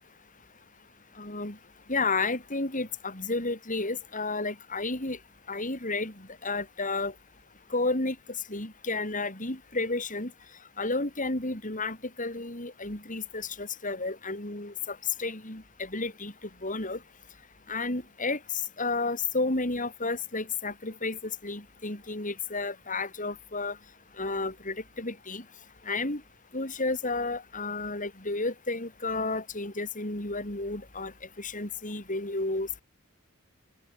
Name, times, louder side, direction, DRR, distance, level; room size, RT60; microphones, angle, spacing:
voice 1, 1.2-1.6 1.9-5.2 5.5-7.1 7.7-8.2 8.5-10.3 10.8-16.3 16.6-17.0 17.7-18.4 18.8-23.8 24.2-25.4 25.8-26.2 26.5-31.1 31.4-32.8, left 3 dB, 40° left, 6.7 m, -32 dB
open air
head